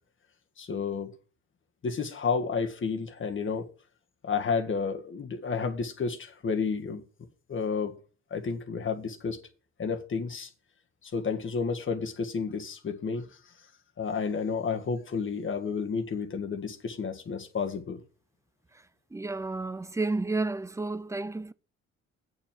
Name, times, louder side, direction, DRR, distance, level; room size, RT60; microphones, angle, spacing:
voice 1, 0.6-1.1 1.8-3.7 4.2-7.0 7.5-7.9 8.3-9.4 9.8-10.5 11.0-13.3 14.0-18.0, left 5 dB, 40° left, 1.7 m, -31 dB
voice 2, 19.1-21.5, right 3 dB, 10° right, 0.5 m, -31 dB
8.6 x 4.7 x 7.3 m
cardioid pair, 90°, 30 cm